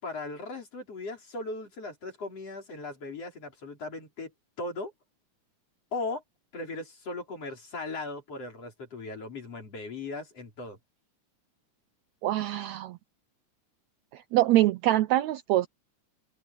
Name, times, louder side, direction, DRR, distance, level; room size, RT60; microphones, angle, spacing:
voice 1, 0.0-4.3 4.6-4.9 5.9-6.2 6.5-10.8, left 3 dB, 50° left, 6.0 m, -38 dB
voice 2, 12.2-13.0 14.1-15.7, right 15 dB, 75° right, 1.8 m, -24 dB
open air
omnidirectional pair, 3.6 m